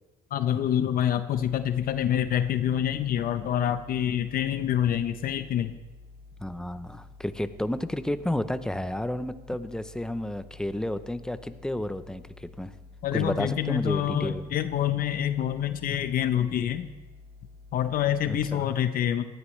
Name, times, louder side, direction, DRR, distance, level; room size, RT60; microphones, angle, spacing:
voice 1, 0.3-5.7 13.0-16.9 17.7-19.2, left 10 dB, 60° left, 10 dB, 0.8 m, -26 dB
sound 1, 1.3-18.4, left 3 dB, 70° right, 1.7 m, -50 dB
voice 2, 6.4-12.7 13.1-14.5 18.2-18.6, left 1 dB, 5° left, 11 dB, 0.7 m, -31 dB
19.5 x 13.0 x 3.2 m, 1.2 s
cardioid pair, 110°, 17 cm